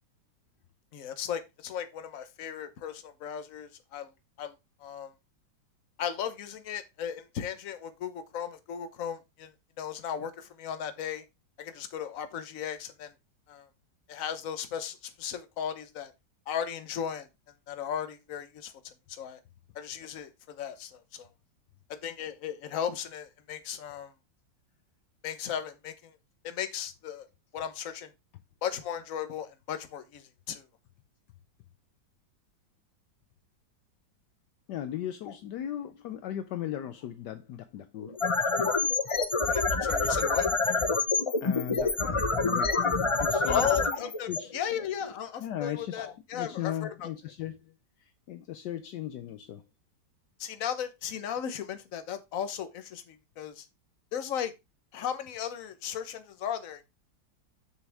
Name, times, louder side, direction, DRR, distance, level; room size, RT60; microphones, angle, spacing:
voice 1, 0.9-4.1 4.4-4.5 4.8-5.1 6.0-9.5 9.8-11.2 11.6-13.1 13.5-13.7 14.1-16.1 16.5-17.3 17.7-19.4 19.7-21.3 22.0-24.1 25.2-26.1 26.4-27.3 27.5-28.1 28.6-30.6 39.5-40.5 42.0-42.1 43.5-47.1 50.4-53.6 54.1-54.5 54.9-56.8, left 9 dB, 55° left, 1.2 m, -36 dB
voice 2, 34.7-38.2 41.4-42.8 43.2-43.7 44.3-44.5 45.4-47.7 48.0-49.6, left 11 dB, 75° left, 1.2 m, -37 dB
sound 1, 38.0-45.1, left 4 dB, 35° left, 0.4 m, -27 dB
7.0 x 6.6 x 3.4 m
omnidirectional pair, 2.0 m